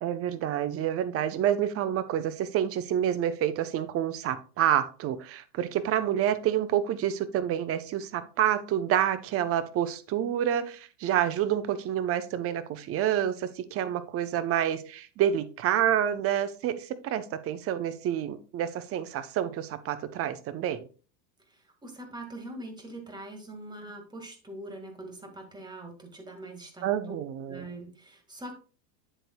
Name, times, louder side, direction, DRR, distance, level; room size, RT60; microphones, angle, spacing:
voice 1, 0.0-20.9 26.8-27.7, right 10 dB, 30° right, 13 dB, 0.7 m, -28 dB
voice 2, 21.5-27.2 27.5-28.5, right 1 dB, 10° right, 4 dB, 1.8 m, -43 dB
9.0 x 7.8 x 2.2 m, 0.37 s
hypercardioid pair, 115°, 50 cm